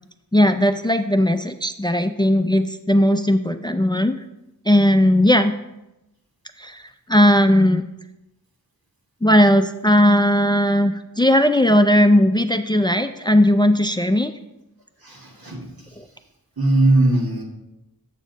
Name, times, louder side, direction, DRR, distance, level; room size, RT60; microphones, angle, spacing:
voice 1, 0.3-4.2 4.7-5.5 6.6-6.8 7.1-7.8 9.2-14.3 16.0-16.1, left 1 dB, 10° left, 8 dB, 0.4 m, -17 dB
voice 2, 15.0-15.9 16.6-17.4, right 2 dB, 75° right, -2 dB, 2.0 m, -20 dB
7.4 x 7.2 x 4.0 m, 0.92 s
wide cardioid pair, 45°, 36 cm